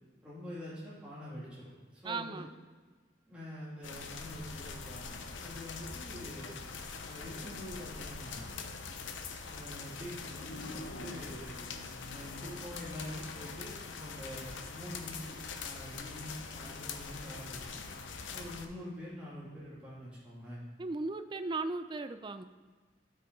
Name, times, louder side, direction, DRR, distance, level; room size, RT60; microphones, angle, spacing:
voice 1, 0.2-2.5 3.3-6.6 7.1-8.5 9.5-11.6 12.1-15.4 15.6-17.8 18.3-20.6, left 1 dB, 5° right, -10 dB, 2.6 m, -45 dB
voice 2, 2.0-2.5 20.8-22.4, right 3 dB, 25° right, 11 dB, 0.4 m, -36 dB
sound 1, 3.8-18.7, left 4 dB, 85° left, 0.8 m, -43 dB
12.5 x 5.6 x 4.0 m, 1.4 s
head